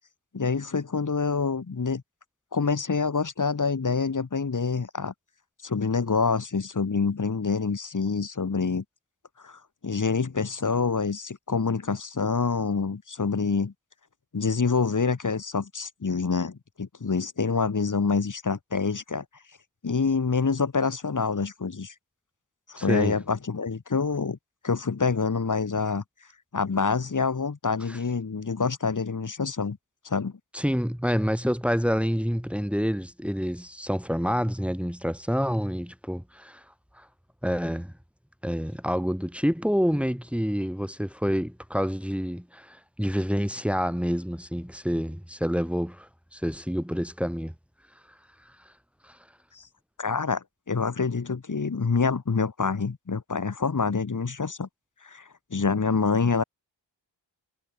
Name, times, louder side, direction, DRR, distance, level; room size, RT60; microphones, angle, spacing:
voice 1, 0.3-2.0 2.5-5.1 5.6-8.8 9.4-13.7 14.3-19.2 19.8-21.9 22.7-24.4 24.6-26.0 26.5-29.8 30.0-30.3 49.5-49.6 50.0-54.7 55.0-55.2 55.5-56.4, left 5 dB, 40° left, 1.3 m, -26 dB
voice 2, 22.8-23.1 27.9-28.0 30.5-36.6 37.0-37.1 37.4-37.9 38.4-47.5 49.0-49.2, equal, 5° right, 6.0 m, -28 dB
cardioid pair, 40°, 46 cm